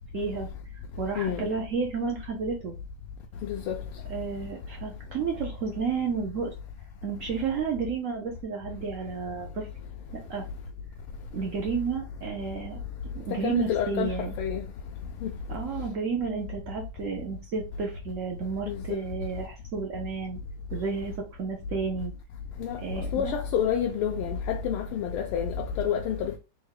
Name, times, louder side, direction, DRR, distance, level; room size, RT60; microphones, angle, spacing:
voice 1, 0.1-0.5 0.7-2.8 4.1-6.5 7.0-9.7 10.3-10.4 11.3-12.8 13.1-14.3 15.5-20.4 20.7-22.1 22.8-23.4, right 5 dB, 90° right, 0.6 m, -31 dB
voice 2, 1.2-1.5 3.5-3.8 13.4-14.1 14.4-14.6 15.2-15.3 18.7-18.8 22.6-22.8 23.1-26.4, left 8 dB, 85° left, 1.5 m, -28 dB
4.5 x 2.2 x 4.7 m
omnidirectional pair, 2.4 m